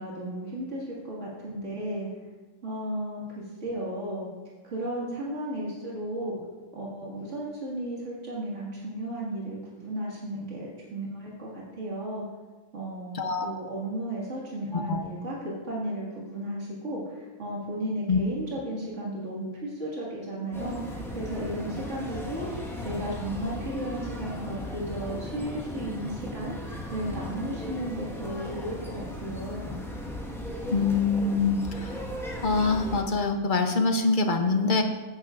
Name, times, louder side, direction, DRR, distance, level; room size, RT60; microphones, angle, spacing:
voice 1, 0.0-2.1 2.6-4.3 4.6-6.4 6.7-12.2 12.7-29.7, right 1 dB, 70° right, -5 dB, 2.3 m, -34 dB
sound 1, 20.5-33.0, left 1 dB, ahead, 1.3 m, -37 dB
voice 2, 30.7-31.9 32.4-34.8, left 4 dB, 45° left, 5 dB, 0.9 m, -24 dB
15.0 x 9.5 x 2.5 m, 1.3 s
omnidirectional pair, 1.3 m